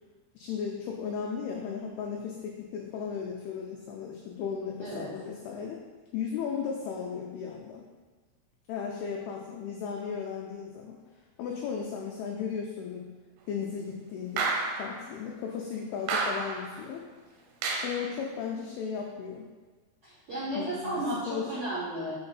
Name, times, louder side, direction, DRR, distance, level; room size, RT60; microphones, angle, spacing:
voice 1, 0.4-5.8 6.1-7.9 8.7-11.0 11.4-13.1 13.5-17.1 17.8-19.5 20.5-21.5, left 6 dB, 90° left, 0 dB, 2.2 m, -35 dB
voice 2, 4.8-5.1 20.0-22.1, right 1 dB, 60° right, -12 dB, 1.6 m, -34 dB
sound 1, 14.4-15.0 16.1-16.7 17.6-18.1, right 3 dB, 85° right, 2.7 m, -30 dB
6.1 x 4.4 x 4.0 m, 1.4 s
omnidirectional pair, 5.2 m